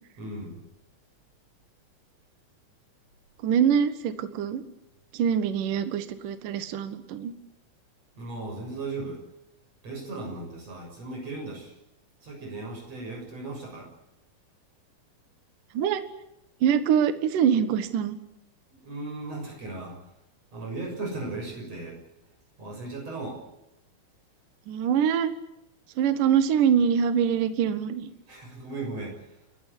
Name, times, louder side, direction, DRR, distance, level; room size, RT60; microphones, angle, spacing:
voice 1, 0.2-0.6 8.2-9.2 9.8-11.7 12.2-13.9 18.7-20.0 20.5-22.0 22.6-23.4 28.3-29.3, right 2 dB, 35° right, 0 dB, 7.7 m, -36 dB
voice 2, 3.4-4.6 5.1-7.3 15.7-16.0 16.6-18.2 24.7-25.3 26.0-28.1, right 8 dB, 60° right, 11 dB, 2.4 m, -24 dB
30.0 x 14.5 x 10.0 m, 0.87 s
omnidirectional pair, 5.5 m